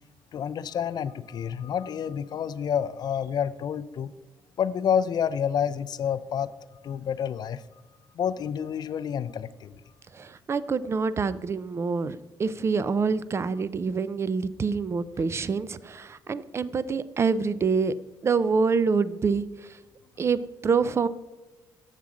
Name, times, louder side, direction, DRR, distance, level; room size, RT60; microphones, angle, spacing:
voice 1, 0.3-4.1 4.6-6.5 6.8-7.6 8.2-9.8, left 8 dB, 55° left, 13 dB, 0.4 m, -29 dB
voice 2, 10.1-17.9 18.2-19.8 20.2-21.1, right 5 dB, 30° right, 16 dB, 0.4 m, -26 dB
7.3 x 7.1 x 3.7 m, 1.2 s
cardioid pair, 100°, 9 cm